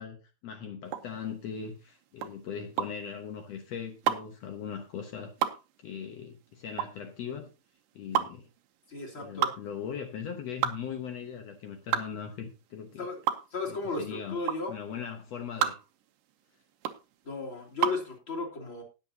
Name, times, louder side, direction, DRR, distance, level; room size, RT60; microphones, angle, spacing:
voice 1, 0.0-5.5 5.8-7.5 7.9-8.5 9.1-13.1 13.7-14.4 14.7-15.7, left 7 dB, 85° left, 1.4 m, -39 dB
sound 1, 0.9-18.1, right 10 dB, 70° right, 2.3 m, -32 dB
voice 2, 8.9-9.5 13.0-13.2 13.5-14.7 17.2-18.8, left 3 dB, 30° left, 3.3 m, -35 dB
19.5 x 7.1 x 2.8 m
omnidirectional pair, 4.5 m